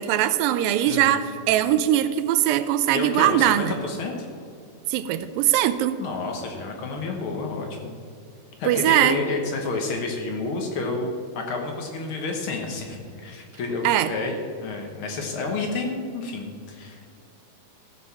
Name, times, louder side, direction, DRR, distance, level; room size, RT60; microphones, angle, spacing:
voice 1, 0.0-3.7 4.9-6.0 8.7-9.2 13.8-14.1, right 12 dB, 80° right, 12 dB, 2.2 m, -21 dB
voice 2, 0.9-1.2 2.9-4.3 6.0-7.9 8.6-17.2, left 3 dB, 85° left, 2 dB, 1.1 m, -30 dB
15.5 x 6.2 x 7.0 m, 2.2 s
omnidirectional pair, 4.3 m